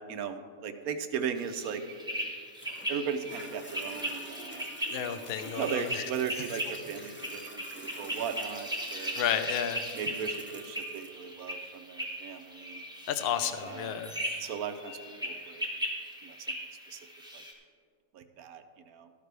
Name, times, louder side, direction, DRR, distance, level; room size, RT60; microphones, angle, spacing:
voice 1, 0.1-1.8 2.9-4.7 5.6-9.2 9.9-12.8 13.6-13.9 14.4-15.6 16.2-16.4 16.9-17.0 17.3-17.4 18.1-19.1, right 7 dB, 70° right, 8 dB, 1.1 m, -37 dB
sound 1, 1.3-17.5, right 1 dB, 5° right, 1.1 m, -38 dB
Toilet flush, 2.6-15.6 16.2-16.3, left 1 dB, 15° left, 0.4 m, -49 dB
voice 2, 4.9-6.4 9.2-9.8 13.1-14.2, left 9 dB, 60° left, 9 dB, 0.6 m, -32 dB
12.5 x 12.5 x 3.4 m, 2.1 s
omnidirectional pair, 1.7 m